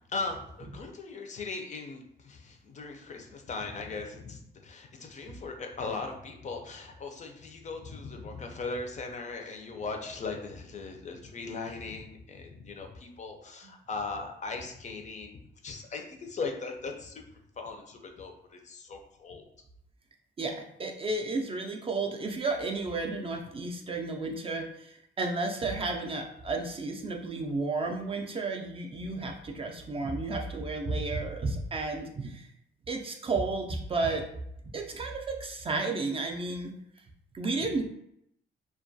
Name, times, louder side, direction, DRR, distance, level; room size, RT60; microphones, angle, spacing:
voice 1, 0.1-15.4 15.6-17.2 17.6-19.4, left 3 dB, 40° left, 3 dB, 0.4 m, -39 dB
voice 2, 20.4-32.5 32.9-34.2 34.6-36.7 37.3-37.8, right 3 dB, 30° right, 2 dB, 0.3 m, -32 dB
2.3 x 2.1 x 2.6 m, 0.75 s
cardioid pair, 90°, 20 cm